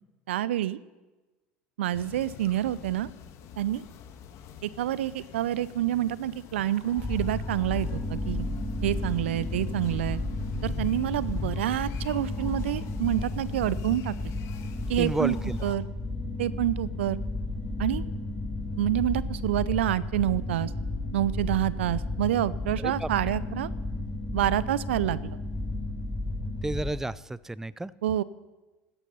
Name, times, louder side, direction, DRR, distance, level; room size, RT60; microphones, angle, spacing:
voice 1, 0.3-0.8 1.8-3.1 3.6-3.8 4.6-8.4 8.8-10.2 10.6-14.1 14.9-15.4 15.6-15.9 16.4-17.2 17.8-18.0 18.8-20.7 21.1-23.7 24.3-25.4 28.0-28.2, right 12 dB, 75° right, 19 dB, 0.6 m, -27 dB
sound 1, 1.9-15.8, left 9 dB, 50° left, 1.8 m, -45 dB
sound 2, 7.0-26.9, left 2 dB, 10° left, 3.7 m, -33 dB
voice 2, 15.0-15.6 22.8-23.1 26.6-27.9, right 2 dB, 5° right, 20 dB, 0.5 m, -31 dB
16.0 x 12.5 x 5.6 m, 1.2 s
hypercardioid pair, 80°, 6 cm